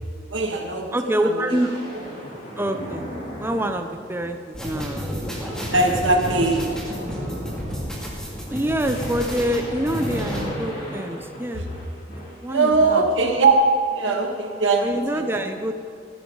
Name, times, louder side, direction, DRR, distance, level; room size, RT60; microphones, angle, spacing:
voice 1, 0.3-0.9 1.2-1.3 5.7-6.7 11.6-11.7 12.5-13.5 13.9-15.2, right 3 dB, 75° right, 1 dB, 2.2 m, -20 dB
voice 2, 0.9-1.7 2.6-3.1 3.4-5.5 8.5-11.6 12.1-13.1 14.8-15.8, right 1 dB, 10° right, 6 dB, 0.7 m, -26 dB
sound 1, 1.5-4.4 4.8-5.1 5.4-12.5, equal, 50° left, 4.1 m, -37 dB
sound 2, 4.5-10.4, equal, 5° left, 2.7 m, -31 dB
15.5 x 13.5 x 4.0 m, 2.4 s
head